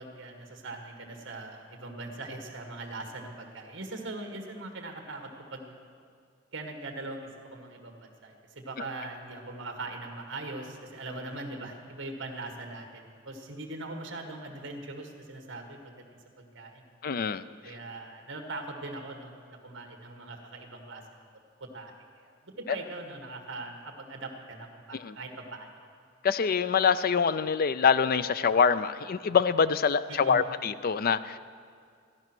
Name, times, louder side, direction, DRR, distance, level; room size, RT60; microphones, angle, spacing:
voice 1, 0.0-5.7 6.5-15.9 16.4-16.9 17.6-21.0 21.6-25.7 30.1-30.4, right 2 dB, 65° right, 3 dB, 1.8 m, -41 dB
voice 2, 17.0-17.4 24.9-25.1 26.2-31.4, left 6 dB, 50° left, 14 dB, 0.4 m, -25 dB
15.0 x 11.0 x 6.1 m, 2.1 s
head